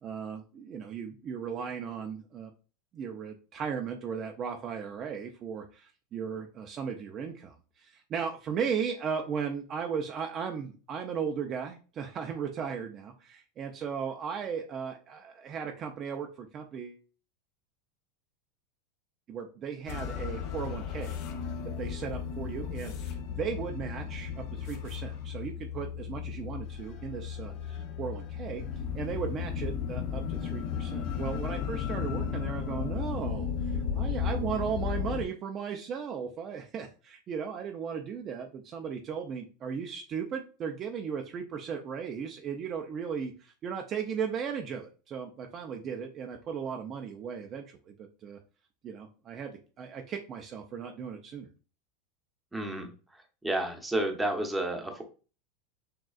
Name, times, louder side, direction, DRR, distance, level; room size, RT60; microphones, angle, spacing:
voice 1, 0.0-2.5 2.9-17.0 19.3-21.2 21.8-28.6 28.9-48.4 48.8-51.5, right 6 dB, 30° right, 3 dB, 0.5 m, -36 dB
sound 1, 19.9-35.2, left 7 dB, 55° left, 0.6 m, -34 dB
voice 2, 52.5-52.9 53.1-55.0, right 1 dB, 5° right, 3 dB, 0.7 m, -31 dB
6.2 x 2.3 x 2.3 m, 0.35 s
supercardioid pair, 145°, 0 cm